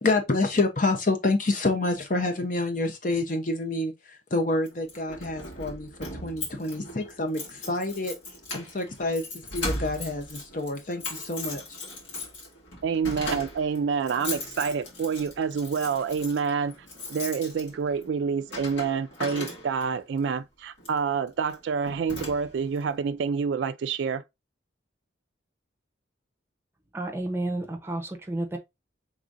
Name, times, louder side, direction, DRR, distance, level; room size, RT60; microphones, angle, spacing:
voice 1, 0.0-8.1 8.5-9.2 9.5-11.8, left 2 dB, 45° left, 0.7 m, -28 dB
Keys jangling, 4.7-20.0 20.8-21.0 21.5-21.6 21.9-22.8, left 2 dB, 75° left, 2.3 m, -38 dB
voice 2, 12.8-16.8 17.1-24.2, right 6 dB, 70° right, 0.3 m, -27 dB
voice 3, 26.9-28.6, right 1 dB, 10° right, 0.8 m, -31 dB
4.9 x 3.6 x 2.6 m
head